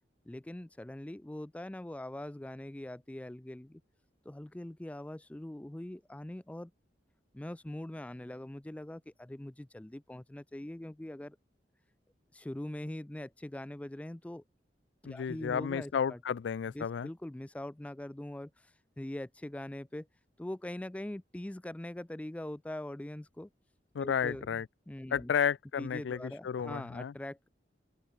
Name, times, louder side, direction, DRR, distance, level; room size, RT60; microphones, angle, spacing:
voice 1, 0.3-3.8 4.3-6.7 7.3-11.4 12.3-14.4 15.0-16.2 16.7-18.5 19.0-20.1 20.4-23.5 24.0-24.6 24.9-25.3 25.8-27.5, left 1 dB, 10° left, 0.3 m, -42 dB
voice 2, 15.0-17.1 23.9-24.7 25.1-27.1, left 7 dB, 85° left, 0.4 m, -32 dB
open air
head